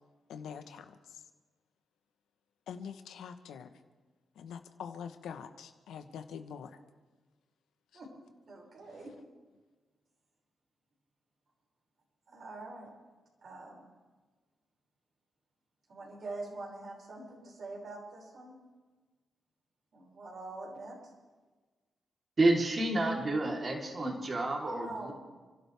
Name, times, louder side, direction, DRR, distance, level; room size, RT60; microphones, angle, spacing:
voice 1, 0.3-0.9 2.7-3.7 4.4-6.8, left 7 dB, 85° left, 8 dB, 1.2 m, -44 dB
voice 2, 8.5-9.1 12.3-12.9 13.4-13.9 15.9-18.5 19.9-21.0 24.8-25.1, right 2 dB, 65° right, -3 dB, 6.3 m, -44 dB
voice 3, 22.4-25.1, right 2 dB, 45° right, 0 dB, 3.7 m, -29 dB
30.0 x 12.0 x 3.6 m, 1.3 s
cardioid pair, 60°, 0 cm